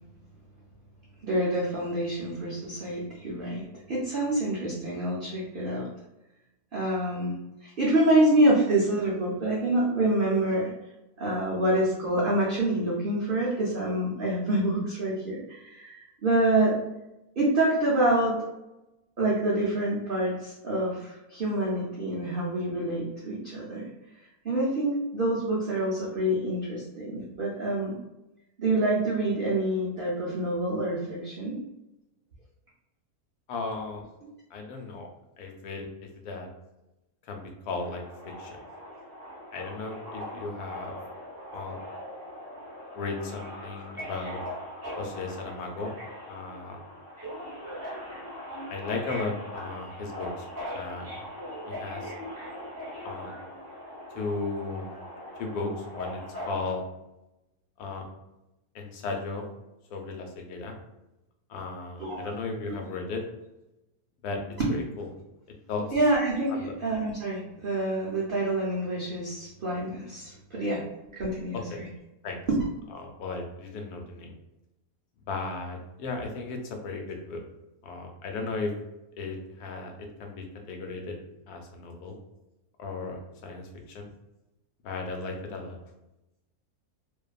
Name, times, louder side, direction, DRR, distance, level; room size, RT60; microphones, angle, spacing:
voice 1, 1.2-5.9 6.7-7.3 7.6-10.7 11.2-16.8 17.4-18.4 19.2-23.9 24.4-27.9 28.6-31.6 62.0-62.3 62.7-62.8 64.6-64.7 65.9-70.8 71.1-71.9, right 1 dB, 75° right, -5 dB, 0.5 m, -27 dB
voice 2, 33.5-34.0 34.5-35.1 35.4-35.9 36.2-36.5 37.3-38.6 39.5-40.9 41.5-41.8 42.9-44.4 44.9-45.9 46.3-46.8 48.7-50.5 50.7-51.3 51.7-52.1 53.0-53.3 54.1-54.9 55.4-56.8 57.8-58.1 58.7-59.5 59.9-60.7 61.5-63.2 64.2-64.4 64.7-65.1 65.7-65.8 66.5-66.7 71.5-71.8 72.2-72.4 73.0-74.3 75.3-77.4 77.8-78.7 79.2-81.2 81.5-82.1 82.8-84.1 84.8-85.8, left 3 dB, 80° left, 2 dB, 1.1 m, -35 dB
Subway metro underground, 37.8-56.7, equal, 15° right, 0.9 m, -40 dB
2.6 x 2.2 x 2.3 m, 0.94 s
omnidirectional pair, 1.6 m